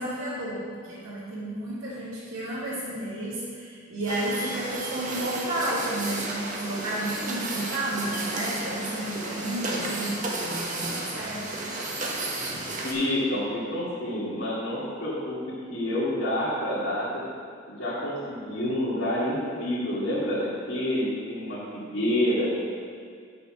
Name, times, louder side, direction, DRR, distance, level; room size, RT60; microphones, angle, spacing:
voice 1, 0.0-11.4, right 1 dB, 90° right, -13 dB, 2.6 m, -32 dB
sound 1, 4.1-12.9, right 2 dB, 40° right, 1.3 m, -33 dB
voice 2, 12.8-17.2 17.7-22.5, left 1 dB, 70° left, -11 dB, 2.3 m, -28 dB
8.3 x 6.6 x 6.0 m, 2.1 s
head